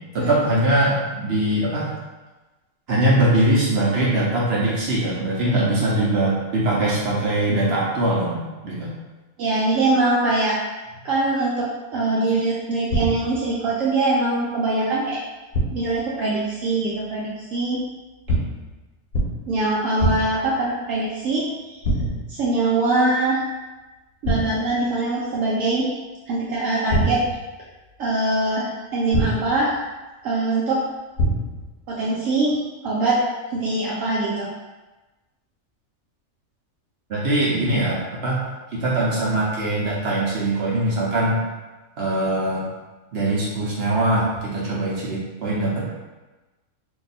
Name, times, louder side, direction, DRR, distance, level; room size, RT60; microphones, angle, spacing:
voice 1, 0.1-1.9 2.9-8.9 37.1-38.4 38.7-41.4 42.0-42.7 43.1-45.8, right 1 dB, 55° right, -6 dB, 0.8 m, -22 dB
voice 2, 9.4-10.6 11.0-15.2 15.7-17.8 19.5-21.8 22.3-23.4 24.2-25.9 26.3-27.2 28.0-29.7 30.2-30.8 31.9-32.6 32.8-33.2 33.5-34.5, right 2 dB, 75° right, -6 dB, 0.9 m, -22 dB
sound 1, 12.9-13.5 15.5-16.0 18.3-18.7 19.1-19.6 20.0-20.5 21.8-22.4 24.2-24.7 26.9-27.5 29.1-29.7 31.2-31.7, right 1 dB, 80° left, 1.0 m, -24 dB
2.7 x 2.3 x 4.0 m, 1.2 s
omnidirectional pair, 1.5 m